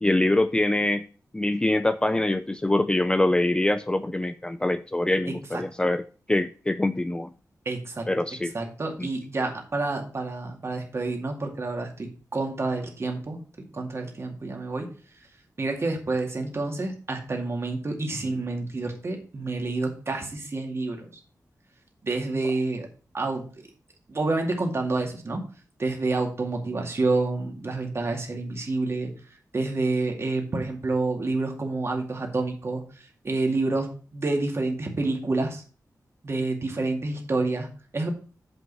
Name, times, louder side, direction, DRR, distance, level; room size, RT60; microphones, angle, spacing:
voice 1, 0.0-1.0 1.3-6.0 6.3-7.3 8.1-8.5 9.0-9.1, left 1 dB, 15° left, 12 dB, 0.4 m, -24 dB
voice 2, 5.3-5.6 7.7-8.1 8.5-13.4 13.7-14.9 15.6-21.1 22.0-22.9 23.1-23.6 24.1-25.4 25.8-29.1 29.5-35.6 36.2-37.7 37.9-38.1, right 3 dB, 40° right, 2 dB, 2.2 m, -28 dB
7.8 x 5.4 x 5.5 m, 0.38 s
wide cardioid pair, 145°, 7 cm